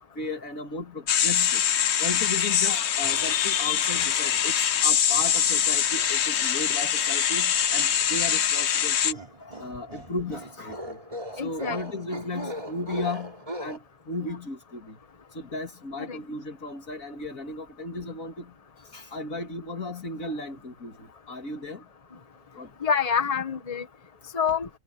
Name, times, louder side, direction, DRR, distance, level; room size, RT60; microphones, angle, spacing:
voice 1, 0.1-1.6 2.0-4.5 4.8-11.0 11.3-13.3 13.6-15.0 15.3-18.5 18.9-21.9 22.6-22.7, left 2 dB, 80° left, 3.2 m, -35 dB
sound 1, 1.1-9.1, left 9 dB, 60° left, 1.0 m, -23 dB
sound 2, 3.0-3.6 3.9-4.7 5.1-6.3 9.1-13.8, equal, 25° right, 3.5 m, -39 dB
voice 2, 11.4-11.8 16.1-16.2 22.8-23.9 24.3-24.7, left 7 dB, 30° left, 1.5 m, -26 dB
omnidirectional pair, 1.4 m